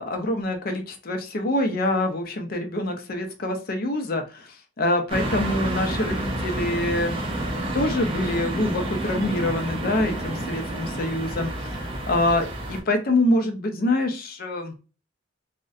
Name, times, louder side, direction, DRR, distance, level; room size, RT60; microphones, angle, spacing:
voice 1, 0.0-4.5 4.8-7.2 7.7-14.7, left 1 dB, 50° left, 5 dB, 0.5 m, -25 dB
sound 1, 5.1-12.8, right 1 dB, 30° right, 0.5 m, -29 dB
2.5 x 2.1 x 2.3 m, 0.33 s
head